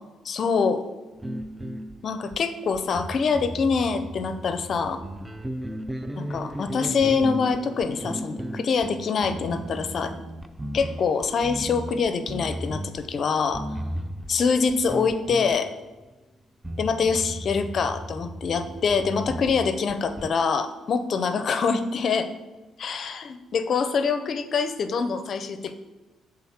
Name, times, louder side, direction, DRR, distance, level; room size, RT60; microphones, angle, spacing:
voice 1, 0.2-0.8 2.0-5.0 6.2-10.1 10.7-13.6 14.3-15.7 16.8-22.3 22.8-25.8, left 5 dB, 55° left, 9 dB, 0.5 m, -25 dB
sound 1, 1.1-16.1 16.6-20.3, equal, 10° right, 0.4 m, -35 dB
7.3 x 3.8 x 4.3 m, 1.2 s
cardioid pair, 90°, 0 cm